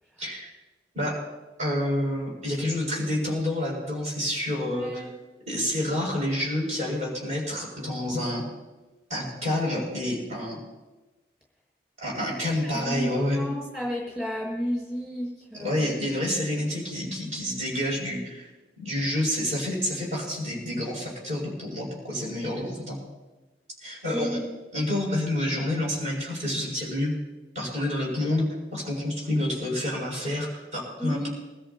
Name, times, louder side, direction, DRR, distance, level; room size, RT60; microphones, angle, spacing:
voice 1, 0.2-0.5 0.9-1.2 1.6-5.0 5.5-8.4 9.1-10.6 12.0-13.4 15.6-18.5 18.8-23.0 23.8-24.4 24.7-27.1 27.5-28.5 28.7-31.3, left 1 dB, 40° right, -4 dB, 6.5 m, -28 dB
voice 2, 4.6-5.1 12.4-15.9 24.1-24.5 31.0-31.3, equal, 10° right, -5 dB, 6.4 m, -32 dB
24.5 x 13.5 x 2.9 m, 1.1 s
head